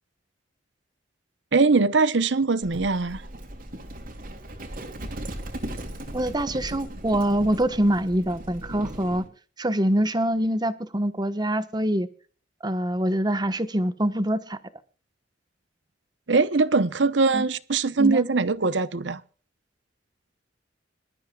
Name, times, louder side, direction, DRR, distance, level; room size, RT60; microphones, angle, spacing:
voice 1, 1.5-3.2 16.3-19.2, right 4 dB, 75° right, 0.9 m, -22 dB
Livestock farm animals working animals, 2.6-9.3, right 1 dB, 50° right, 2.9 m, -37 dB
voice 2, 6.1-9.2 9.6-12.1 12.6-14.6 17.3-17.5 18.0-18.2, right 1 dB, 25° right, 1.2 m, -24 dB
26.0 x 13.0 x 2.4 m
head